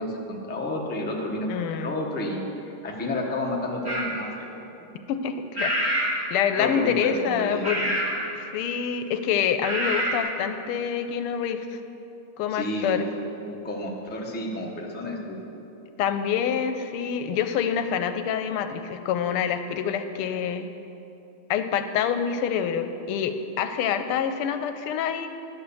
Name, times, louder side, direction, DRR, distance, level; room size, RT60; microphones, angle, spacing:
voice 1, 0.0-4.5 6.6-7.9 12.5-13.0 13.4-15.4, left 1 dB, 10° left, -1 dB, 0.5 m, -31 dB
voice 2, 1.5-1.9 5.1-8.0 8.4-11.8 12.4-13.1 16.0-20.7 21.5-25.3, left 8 dB, 90° left, 9 dB, 1.5 m, -27 dB
sound 1, 3.8-4.1 5.5-6.2 6.6-6.9 7.6-8.2 9.6-10.2, right 1 dB, 10° right, 1.9 m, -26 dB
11.0 x 6.9 x 7.0 m, 2.8 s
omnidirectional pair, 2.4 m